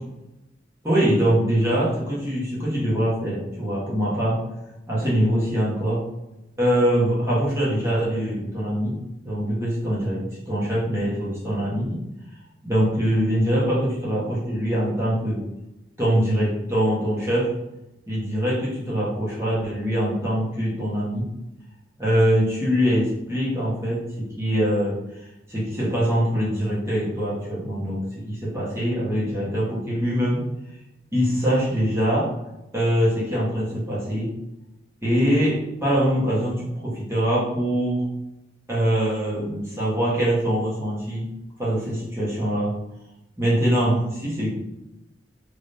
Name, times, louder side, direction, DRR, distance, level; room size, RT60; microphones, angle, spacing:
voice 1, 0.8-4.5 4.9-6.1 6.6-12.0 12.6-15.4 16.0-17.6 18.1-21.3 22.0-30.6 31.1-32.4 32.7-34.3 35.0-38.1 38.7-41.3 41.6-42.7 43.4-44.5, equal, 15° right, -8 dB, 1.2 m, -23 dB
3.2 x 3.0 x 2.6 m, 0.93 s
head